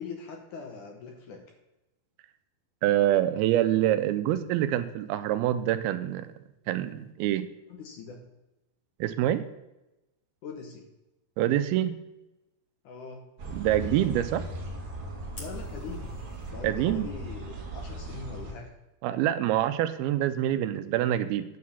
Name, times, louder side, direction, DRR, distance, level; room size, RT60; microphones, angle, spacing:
voice 1, 0.0-1.4 7.7-8.2 10.4-10.9 12.8-13.3 15.4-16.2 16.5-18.7, left 5 dB, 70° left, 2 dB, 2.1 m, -42 dB
voice 2, 2.8-6.3 6.7-7.5 9.0-9.4 11.4-11.9 13.5-14.4 16.6-17.1 19.0-21.5, right 12 dB, 85° right, 11 dB, 2.5 m, -26 dB
sound 1, 13.4-18.5, right 1 dB, 45° right, 1.9 m, -38 dB
Fire, 15.3-16.5, left 2 dB, 55° left, 0.8 m, -48 dB
9.2 x 4.7 x 6.9 m, 0.96 s
omnidirectional pair, 4.3 m